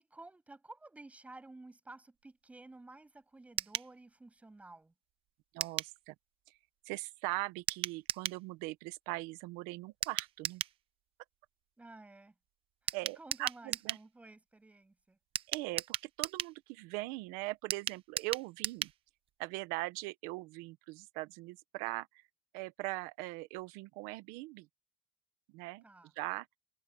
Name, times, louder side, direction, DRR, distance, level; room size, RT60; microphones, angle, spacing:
voice 1, 0.0-4.9 11.8-12.3 12.8-15.2 25.8-26.1, right 2 dB, 10° right, 7.5 m, -53 dB
sound 1, 3.6-3.9 5.6-5.9 7.7-8.4 10.0-10.8 12.9-14.0 15.3-16.6 17.7-19.0 19.3-19.4 19.6-19.7, right 12 dB, 40° right, 0.7 m, -37 dB
voice 2, 5.5-6.1 6.8-10.6 12.9-14.0 15.5-18.9 19.4-22.2 22.5-24.7 25.5-25.8 26.2-26.5, right 21 dB, 80° right, 1.2 m, -40 dB
cardioid pair, 150°, 14 cm